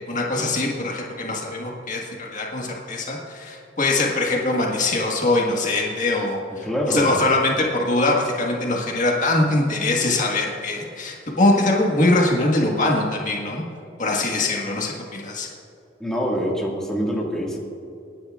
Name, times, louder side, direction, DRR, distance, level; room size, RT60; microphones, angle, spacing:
voice 1, 0.1-13.6 14.0-15.5, left 2 dB, 40° left, -1 dB, 1.7 m, -22 dB
voice 2, 6.6-7.2 16.0-17.6, equal, 5° left, -4 dB, 2.0 m, -25 dB
28.0 x 10.5 x 2.5 m, 2.7 s
head